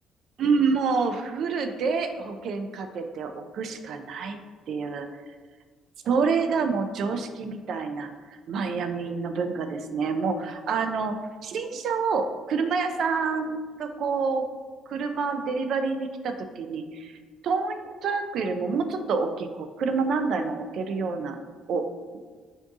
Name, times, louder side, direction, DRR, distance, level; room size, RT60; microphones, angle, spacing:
voice 1, 0.4-4.4 4.7-5.1 6.1-11.2 11.4-14.4 14.9-17.1 17.4-21.4 21.7-21.8, right 5 dB, 55° right, 7 dB, 0.3 m, -27 dB
3.6 x 2.6 x 3.5 m, 1.5 s
cardioid pair, 145°, 0 cm